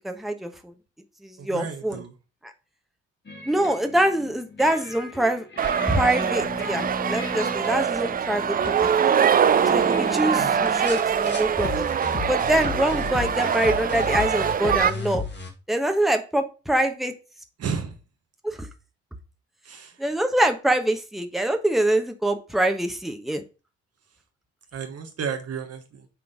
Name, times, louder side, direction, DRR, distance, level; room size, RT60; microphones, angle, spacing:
voice 1, 0.0-0.7 1.2-2.0 3.4-5.4 5.9-8.9 9.7-11.8 12.3-15.2 15.7-17.1 18.4-18.7 20.0-23.4, right 1 dB, ahead, 5 dB, 1.2 m, -24 dB
voice 2, 1.4-2.2 10.3-10.6 17.6-18.0 19.6-20.1 24.7-26.1, right 6 dB, 50° right, 4 dB, 1.2 m, -33 dB
sound 1, 3.3-15.5, left 3 dB, 35° left, 1.7 m, -35 dB
sound 2, 5.6-14.9, right 8 dB, 30° right, 0.4 m, -23 dB
6.0 x 3.8 x 4.9 m, 0.32 s
hypercardioid pair, 40°, 32 cm